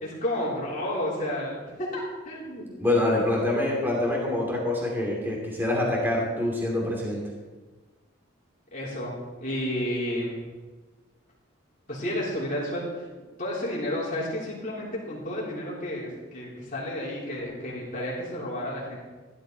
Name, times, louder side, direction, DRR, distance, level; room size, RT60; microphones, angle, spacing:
voice 1, 0.0-1.5 1.8-2.6 8.7-9.1 9.4-10.4 11.9-12.9 13.4-19.0, left 1 dB, 40° left, -6 dB, 3.4 m, -31 dB
voice 2, 2.8-7.2, left 1 dB, 10° right, -3 dB, 2.6 m, -25 dB
16.5 x 12.0 x 4.0 m, 1.3 s
head